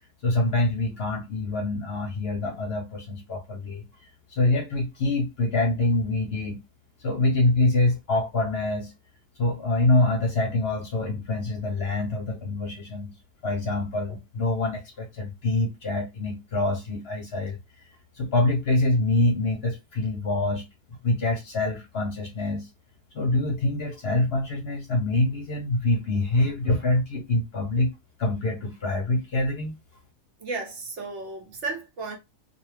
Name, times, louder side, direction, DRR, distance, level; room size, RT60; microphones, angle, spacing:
voice 1, 0.2-3.9 4.3-6.6 7.0-8.9 9.4-13.1 13.4-17.6 18.1-20.6 21.0-22.7 23.1-27.9 28.2-29.7, left 2 dB, 55° left, 0.8 m, -25 dB
voice 2, 30.4-32.1, right 3 dB, 60° right, 1.0 m, -34 dB
2.5 x 2.3 x 3.1 m
omnidirectional pair, 1.4 m